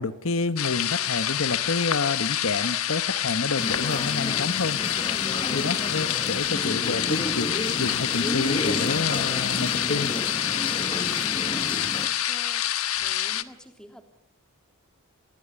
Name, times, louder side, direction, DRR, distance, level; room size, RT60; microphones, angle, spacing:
voice 1, 0.0-4.8 5.5-10.1, left 3 dB, 70° left, 11 dB, 1.3 m, -29 dB
sound 1, 0.6-13.4, left 11 dB, 90° left, 1.3 m, -27 dB
sound 2, 3.6-12.1, left 2 dB, 25° left, 1.3 m, -31 dB
voice 2, 11.2-11.6 12.0-12.7 13.0-14.1, equal, 5° left, 5 dB, 3.3 m, -45 dB
28.5 x 20.5 x 9.7 m, 0.75 s
head